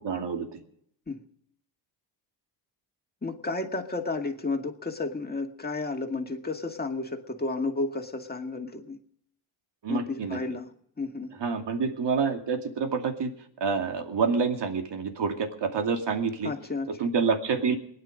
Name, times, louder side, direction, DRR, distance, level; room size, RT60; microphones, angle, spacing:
voice 1, 0.0-0.5 9.8-10.4 11.4-13.3 13.6-16.5 17.0-17.8, right 5 dB, 55° right, 5 dB, 2.5 m, -27 dB
voice 2, 3.2-9.0 9.9-10.7 11.0-11.3 16.4-17.1, left 3 dB, 20° left, 4 dB, 2.1 m, -32 dB
22.0 x 9.9 x 5.2 m, 0.69 s
cardioid pair, 75°, 50 cm